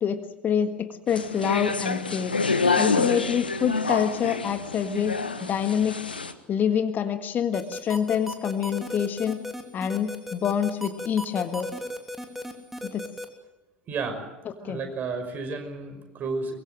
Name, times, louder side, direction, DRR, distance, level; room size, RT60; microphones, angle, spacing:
voice 1, 0.0-2.3 2.8-5.2 5.4-6.0 6.5-9.4 9.7-11.7 12.9-13.1 14.6-14.8, left 8 dB, 35° left, 9 dB, 1.7 m, -26 dB
sound 1, 1.1-6.3, left 4 dB, 85° left, 1.2 m, -27 dB
sound 2, 7.5-13.3, equal, 5° right, 3.2 m, -35 dB
voice 2, 13.9-14.2 14.6-16.6, right 4 dB, 35° right, 6 dB, 5.6 m, -32 dB
24.0 x 22.0 x 7.7 m, 1.0 s
figure-of-eight pair, 65°, 5 cm